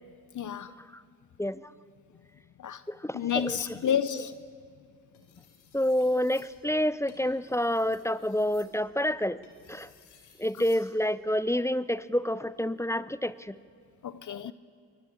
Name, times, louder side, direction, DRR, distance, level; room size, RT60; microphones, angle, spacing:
voice 1, 0.3-0.7 2.6-2.8 3.1-4.3 14.0-14.5, left 9 dB, 50° left, 0.7 m, -30 dB
voice 2, 2.9-3.6 3.8-3.9 5.7-9.4 9.7-9.9 10.4-13.6, left 1 dB, 5° left, 0.6 m, -28 dB
sound 1, 3.2-4.4 5.0-10.9 12.4-12.7, left 6 dB, 85° left, 2.7 m, -58 dB
23.5 x 14.5 x 8.8 m
hypercardioid pair, 45°, 40 cm